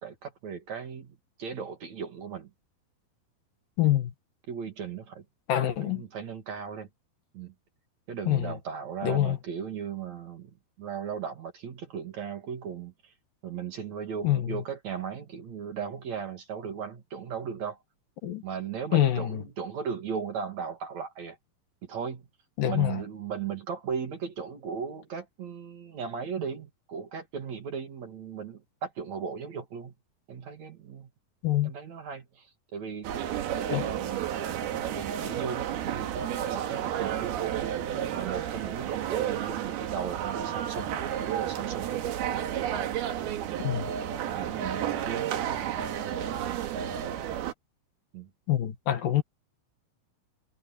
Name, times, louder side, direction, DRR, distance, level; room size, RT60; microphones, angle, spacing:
voice 1, 0.0-2.5 4.5-5.2 5.8-6.9 7.3-7.5 8.1-13.1 13.4-17.8 18.4-21.4 21.8-22.3 22.7-29.9 30.3-31.1 31.6-33.1 33.5-37.3 38.1-40.9 41.3-42.4 43.5-43.6 44.2-46.9 48.1-48.3, right 7 dB, 50° right, 3.0 m, -37 dB
voice 2, 3.8-4.1 5.5-6.0 8.3-8.5 9.0-9.4 14.2-14.6 18.2-18.4 18.9-19.4 22.6-23.0 31.4-31.7 33.7-33.9 43.6-43.9 48.5-49.2, left 12 dB, 65° left, 3.3 m, -25 dB
sound 1, 33.0-47.5, right 10 dB, 85° right, 3.5 m, -31 dB
omnidirectional pair, 4.4 m